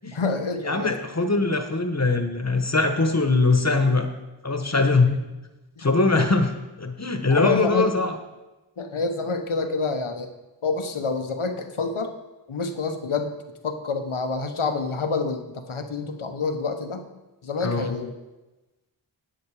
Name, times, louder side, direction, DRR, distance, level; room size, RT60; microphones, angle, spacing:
voice 1, 0.0-0.9 5.8-5.9 6.2-6.3 7.3-7.9 8.8-10.3 10.6-12.1 12.5-13.3 13.6-17.1 17.4-18.1, left 4 dB, 90° left, 7 dB, 1.1 m, -28 dB
voice 2, 0.6-4.1 4.4-5.1 5.8-6.5 6.8-8.1 17.6-17.9, left 3 dB, 35° left, 6 dB, 1.2 m, -21 dB
10.0 x 8.1 x 4.9 m, 1.1 s
wide cardioid pair, 55°, 48 cm